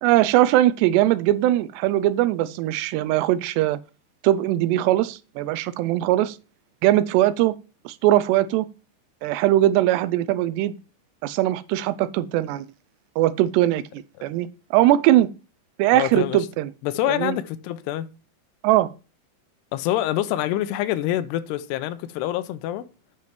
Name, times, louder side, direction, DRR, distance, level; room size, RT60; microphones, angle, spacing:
voice 1, 0.0-3.8 4.2-6.4 6.8-7.5 7.9-8.7 9.2-10.7 11.2-12.7 13.2-15.3 15.8-16.7 17.1-17.4 18.6-18.9, right 14 dB, 90° right, 2.8 m, -20 dB
voice 2, 15.9-16.4 16.8-18.1 19.7-22.9, left 13 dB, 85° left, 2.7 m, -26 dB
9.4 x 5.9 x 4.4 m
omnidirectional pair, 4.8 m